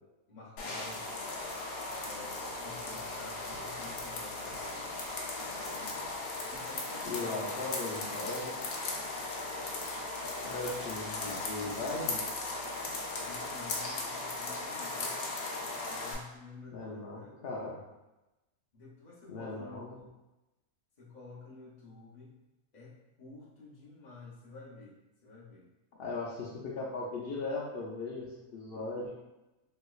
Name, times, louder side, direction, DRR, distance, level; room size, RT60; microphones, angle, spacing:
voice 1, 0.3-1.1 2.0-8.5 10.4-11.0 11.5-12.1 13.2-15.2 15.9-17.5 18.7-20.1 21.0-22.4 22.7-25.7 26.1-26.4 28.6-28.7, left 3 dB, 40° left, -5 dB, 0.6 m, -51 dB
sound 1, 0.6-16.1, left 2 dB, 65° left, 1.0 m, -37 dB
voice 2, 7.0-8.5 10.4-12.2 16.7-17.8 19.3-20.0 26.0-29.1, left 3 dB, 80° left, -3 dB, 0.5 m, -38 dB
3.3 x 2.9 x 2.3 m, 1.0 s
omnidirectional pair, 1.6 m